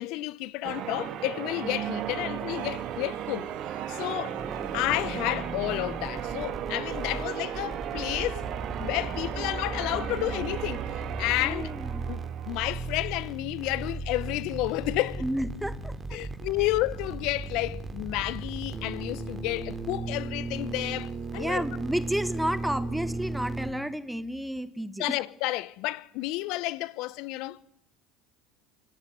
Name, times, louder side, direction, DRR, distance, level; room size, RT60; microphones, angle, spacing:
voice 1, 0.0-3.5 3.9-4.4 4.7-8.5 8.8-11.7 12.1-12.2 12.5-15.2 16.1-21.6 25.0-27.6, left 18 dB, 65° left, 1.0 m, -31 dB
Church bell, 0.6-12.9, right 10 dB, 55° right, 1.9 m, -35 dB
sound 1, 2.5-5.4 7.1-7.3, right 11 dB, 85° right, 3.2 m, -46 dB
sound 2, 4.4-23.7, right 3 dB, 25° right, 3.4 m, -36 dB
voice 2, 11.4-12.0 15.2-16.2 21.3-25.2, right 1 dB, 5° right, 1.6 m, -31 dB
25.5 x 18.0 x 9.5 m
hypercardioid pair, 85°, 0 cm